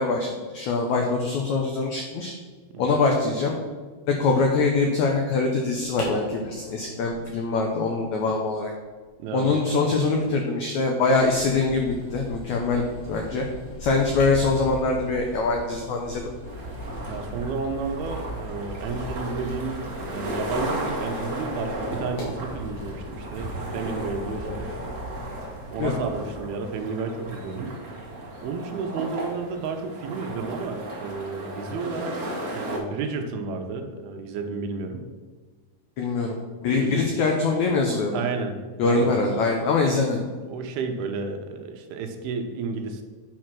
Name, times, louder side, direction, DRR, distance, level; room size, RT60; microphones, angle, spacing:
voice 1, 0.0-2.3 2.8-3.5 4.1-8.7 9.3-13.4 13.8-16.2 25.8-26.0 36.0-38.2 38.8-40.2, left 3 dB, 85° left, 2 dB, 1.6 m, -23 dB
sound 1, 5.7-22.4, equal, 60° left, 4.2 m, -45 dB
voice 2, 9.2-9.5 17.1-24.7 25.7-27.7 28.4-35.1 36.7-37.0 38.1-39.1 40.4-43.0, right 4 dB, 80° right, 5 dB, 2.7 m, -32 dB
sound 2, 11.1-26.4, equal, 25° left, 1.9 m, -39 dB
sound 3, 16.5-32.8, right 1 dB, 40° right, 1.0 m, -35 dB
9.4 x 4.6 x 6.0 m, 1.4 s
omnidirectional pair, 4.5 m